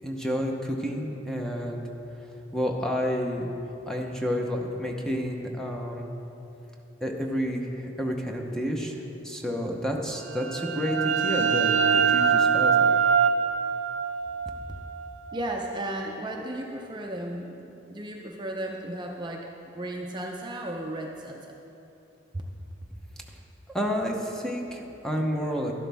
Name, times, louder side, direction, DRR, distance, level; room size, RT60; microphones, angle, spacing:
voice 1, 0.0-1.8 2.5-3.5 3.9-6.1 7.0-8.9 9.2-13.0 23.7-25.7, equal, 5° left, 0 dB, 0.8 m, -30 dB
sound 1, 10.3-15.8, right 6 dB, 75° right, 0.4 m, -24 dB
voice 2, 15.3-17.6 17.9-21.5, right 1 dB, 25° right, 0 dB, 0.6 m, -34 dB
12.0 x 11.5 x 3.5 m, 2.9 s
head